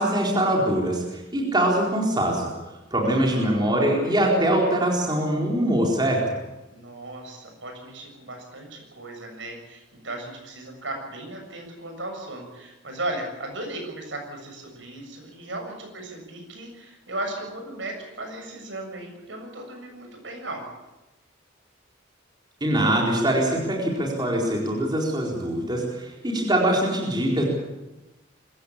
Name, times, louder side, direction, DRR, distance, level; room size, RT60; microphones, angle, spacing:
voice 1, 0.0-2.5 2.9-6.2 22.6-27.4, right 1 dB, 20° right, -2 dB, 4.3 m, -23 dB
voice 2, 3.0-3.7 6.7-20.6, right 2 dB, 70° right, 3 dB, 7.1 m, -36 dB
24.5 x 15.0 x 8.6 m, 1.0 s
head